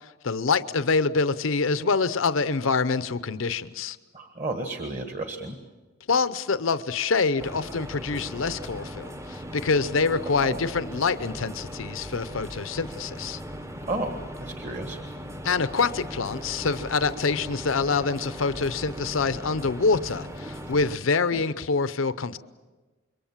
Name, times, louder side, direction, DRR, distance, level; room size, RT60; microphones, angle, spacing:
voice 1, 0.2-4.0 6.1-13.4 15.4-22.4, left 4 dB, 75° left, 0.7 m, -26 dB
voice 2, 4.1-5.6 10.4-10.6 13.9-15.0 20.6-20.7 21.3-21.4, right 2 dB, 40° right, 1.7 m, -32 dB
sound 1, 7.4-21.0, equal, 15° right, 0.8 m, -38 dB
27.0 x 23.0 x 7.4 m
head